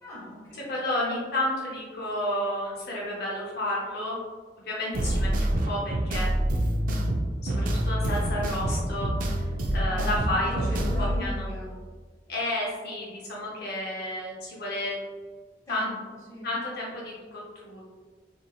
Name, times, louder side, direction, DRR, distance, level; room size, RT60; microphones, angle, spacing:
voice 1, 0.0-0.7 9.8-11.8 15.7-16.5, left 1 dB, 15° left, -7 dB, 0.9 m, -39 dB
voice 2, 0.5-4.2 4.7-6.3 7.4-11.5 12.3-15.0 15.7-15.9 16.4-17.8, left 1 dB, 60° left, -4 dB, 0.6 m, -31 dB
sound 1, 4.9-11.2, right 1 dB, 50° right, 0.3 m, -26 dB
2.8 x 2.6 x 2.2 m, 1.5 s
head